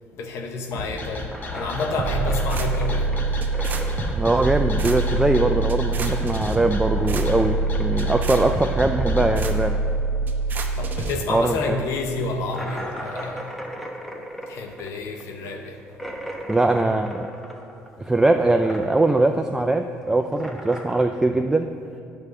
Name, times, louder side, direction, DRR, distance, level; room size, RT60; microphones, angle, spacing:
voice 1, 0.1-3.1 10.8-13.5 14.5-15.8, left 3 dB, 70° left, 4 dB, 0.8 m, -29 dB
sound 1, 0.7-9.3, left 3 dB, 40° left, 1.4 m, -33 dB
sound 2, 1.3-5.6 5.8-10.9 11.1-11.2 11.6-11.7 12.5-18.1 18.3-19.3 19.6-21.0, equal, 5° left, 1.0 m, -38 dB
sound 3, 2.0-11.1, right 3 dB, 40° right, 0.9 m, -25 dB
voice 2, 4.1-9.8 11.3-11.8 16.5-17.3 18.0-21.7, right 2 dB, 10° right, 5 dB, 0.3 m, -21 dB
9.5 x 4.8 x 6.7 m, 2.6 s
cardioid pair, 105°, 5 cm